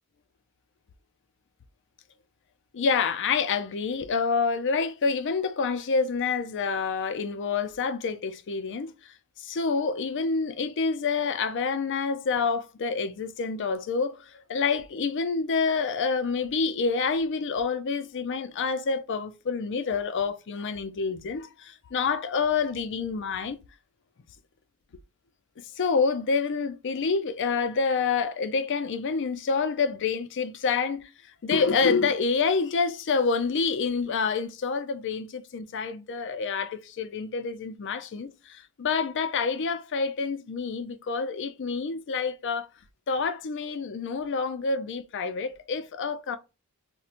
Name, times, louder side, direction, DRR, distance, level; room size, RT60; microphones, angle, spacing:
voice 1, 2.7-8.9 9.4-23.6 25.8-31.1 31.4-42.7 43.1-46.4, left 5 dB, 55° left, 0.4 m, -27 dB
4.2 x 2.2 x 2.5 m
head